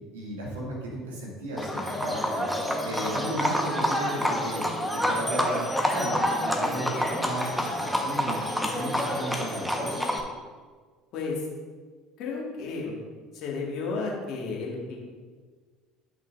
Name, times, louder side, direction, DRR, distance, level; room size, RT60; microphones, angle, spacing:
voice 1, 0.1-2.5 2.8-4.6 4.9-5.6 5.9-10.1, right 1 dB, 85° right, -4 dB, 2.4 m, -35 dB
Livestock farm animals working animals, 1.6-10.2, equal, ahead, 1.3 m, -28 dB
voice 2, 11.1-11.4 12.2-13.0 13.3-15.0, left 4 dB, 60° left, -3 dB, 2.0 m, -32 dB
11.5 x 6.0 x 2.7 m, 1.5 s
hypercardioid pair, 65°, 0 cm